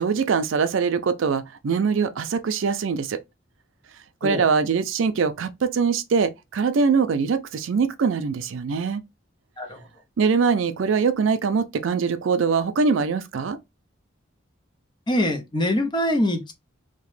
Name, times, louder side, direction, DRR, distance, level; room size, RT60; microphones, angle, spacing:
voice 1, 0.0-3.2 4.2-9.0 10.2-13.6, right 5 dB, 75° right, 0.4 m, -23 dB
voice 2, 15.1-16.5, left 1 dB, 25° left, 0.5 m, -24 dB
2.9 x 2.1 x 3.1 m
head